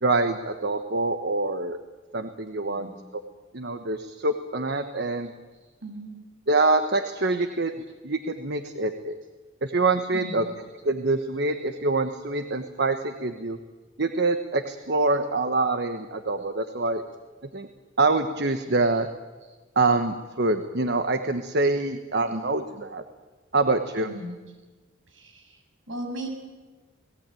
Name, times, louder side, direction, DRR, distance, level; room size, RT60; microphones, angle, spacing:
voice 1, 0.0-1.8 2.1-3.2 3.5-5.3 6.5-7.7 8.0-9.2 9.6-10.4 10.8-13.6 14.0-17.0 17.5-17.7 18.0-19.1 19.7-23.0 23.5-24.1, right 3 dB, 55° right, 8 dB, 1.3 m, -25 dB
voice 2, 5.8-6.2 10.1-10.5 24.0-24.4 25.1-25.6 25.9-26.3, right 1 dB, 70° right, 3 dB, 7.5 m, -37 dB
29.5 x 19.0 x 9.2 m, 1.3 s
head